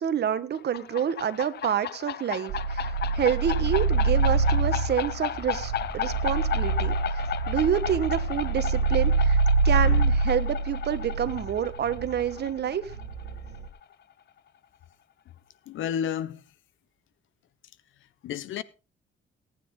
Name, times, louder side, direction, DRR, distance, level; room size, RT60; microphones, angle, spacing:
voice 1, 0.0-9.4 9.6-12.9, right 9 dB, 55° right, 1.4 m, -28 dB
sound 1, 0.5-13.9, left 10 dB, 55° left, 0.8 m, -35 dB
sound 2, 2.5-12.4 12.9-13.7, right 4 dB, 85° right, 1.7 m, -26 dB
voice 2, 15.7-16.4 18.2-18.6, left 9 dB, 80° left, 1.0 m, -31 dB
18.0 x 9.4 x 3.8 m
cardioid pair, 90°, 20 cm